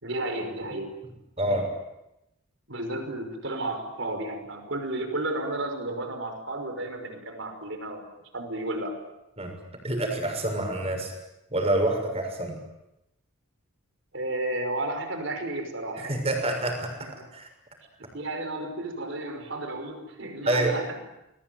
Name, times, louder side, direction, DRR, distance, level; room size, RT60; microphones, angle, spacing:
voice 1, 0.0-1.0 2.7-8.1 8.3-9.0 14.1-16.2 17.0-17.3 18.1-21.0, right 2 dB, 60° right, 6 dB, 5.5 m, -32 dB
voice 2, 1.4-1.7 9.4-9.5 9.8-11.1 11.5-12.6 16.0-16.9 17.3-17.5 20.4-20.8, right 1 dB, 30° right, 4 dB, 6.6 m, -27 dB
29.0 x 21.5 x 9.4 m, 0.90 s
head